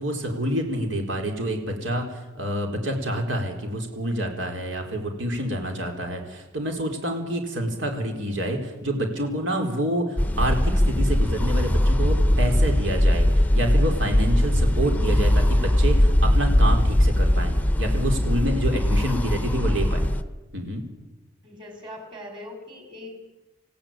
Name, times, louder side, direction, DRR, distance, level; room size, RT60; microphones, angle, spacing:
voice 1, 0.0-20.0 20.5-20.8, right 1 dB, 70° right, 3 dB, 4.1 m, -28 dB
sound 1, 10.2-20.2, left 1 dB, 10° left, 0.8 m, -20 dB
voice 2, 18.7-19.9 21.4-23.4, left 1 dB, 25° right, 3 dB, 6.0 m, -42 dB
28.0 x 16.5 x 9.0 m, 1.1 s
head